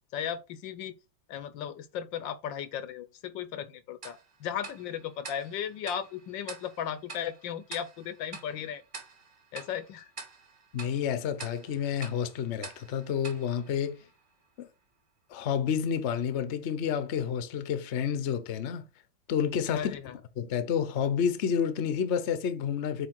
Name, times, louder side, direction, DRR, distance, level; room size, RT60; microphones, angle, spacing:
voice 1, 0.1-1.0 1.3-8.8 9.5-10.1 19.7-20.2, left 9 dB, 75° left, 1.4 m, -36 dB
Tick-tock, 4.0-14.5, right 4 dB, 30° right, 1.1 m, -47 dB
voice 2, 10.7-14.0 14.6-14.7 15.3-18.8 19.3-20.0 20.4-23.1, left 8 dB, 50° left, 0.9 m, -29 dB
8.4 x 3.3 x 6.1 m
omnidirectional pair, 2.1 m